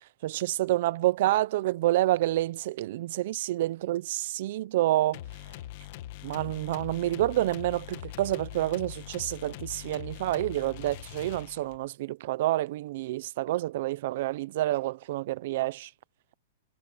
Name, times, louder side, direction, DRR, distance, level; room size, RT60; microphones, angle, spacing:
voice 1, 0.2-5.2 6.2-15.9, right 15 dB, 45° right, 0.5 m, -28 dB
sound 1, 5.1-11.9, left 14 dB, 40° left, 1.8 m, -42 dB
supercardioid pair, 175°, 0 cm